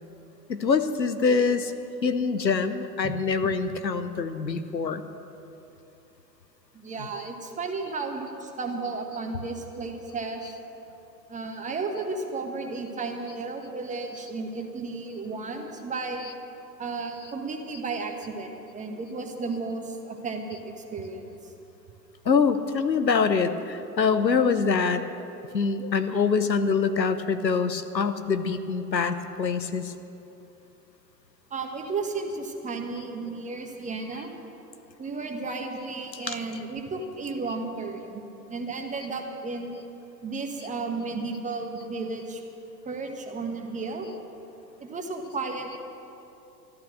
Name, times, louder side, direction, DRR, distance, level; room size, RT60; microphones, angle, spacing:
voice 1, 0.5-1.7 2.0-5.0 22.2-25.0 25.5-29.9 36.1-36.4, left 5 dB, 90° left, 10 dB, 0.9 m, -24 dB
voice 2, 6.7-10.4 11.3-16.3 16.8-21.5 31.5-34.3 35.0-38.2 38.5-39.8 40.2-42.4 42.8-44.1 44.8-45.8, right 3 dB, 15° right, 3 dB, 1.3 m, -33 dB
13.5 x 12.5 x 6.3 m, 2.9 s
figure-of-eight pair, 100°, 49 cm